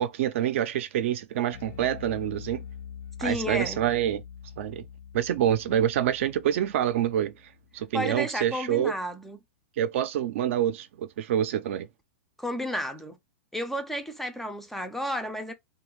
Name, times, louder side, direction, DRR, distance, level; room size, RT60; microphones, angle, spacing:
voice 1, 0.0-2.6 3.2-4.2 4.6-4.8 5.1-7.3 7.7-8.9 9.8-11.9, right 11 dB, 65° right, 0.4 m, -26 dB
Bass guitar, 1.5-8.0, left 8 dB, 85° left, 0.7 m, -44 dB
voice 2, 3.2-3.8 7.9-9.4 12.4-13.2 13.5-15.5, equal, 5° left, 0.3 m, -32 dB
2.4 x 2.3 x 3.0 m
supercardioid pair, 145°, 8 cm